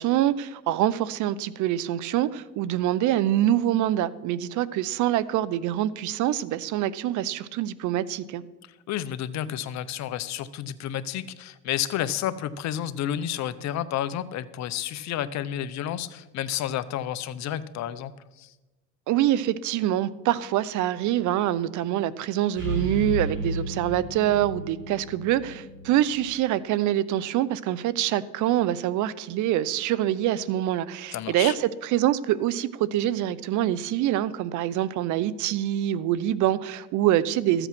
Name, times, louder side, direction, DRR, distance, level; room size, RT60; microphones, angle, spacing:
voice 1, 0.0-8.4 19.1-37.7, right 12 dB, 60° right, 19 dB, 0.7 m, -25 dB
voice 2, 8.9-18.1 18.4-18.5 31.1-31.5, left 11 dB, 50° left, 15 dB, 0.8 m, -31 dB
sound 1, 22.5-26.3, right 1 dB, 35° right, 5.5 m, -33 dB
13.5 x 8.0 x 6.0 m, 1.1 s
supercardioid pair, 100°, 34 cm